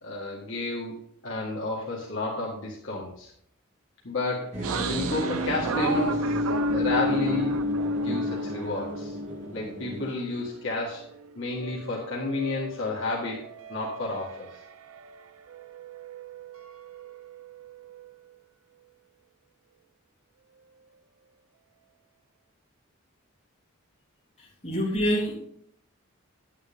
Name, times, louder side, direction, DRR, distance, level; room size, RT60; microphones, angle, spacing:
voice 1, 0.0-3.3 4.0-9.1 9.5-11.0 11.4-14.5, left 2 dB, 60° left, -4 dB, 1.8 m, -31 dB
sound 1, 4.5-10.1, right 1 dB, 35° right, 2.4 m, -36 dB
sound 2, 4.6-10.6 11.0-15.2 15.5-18.1, equal, 90° right, 0.6 m, -32 dB
voice 2, 24.4-25.4, equal, 30° left, -4 dB, 3.2 m, -27 dB
9.6 x 9.5 x 3.6 m, 0.67 s
head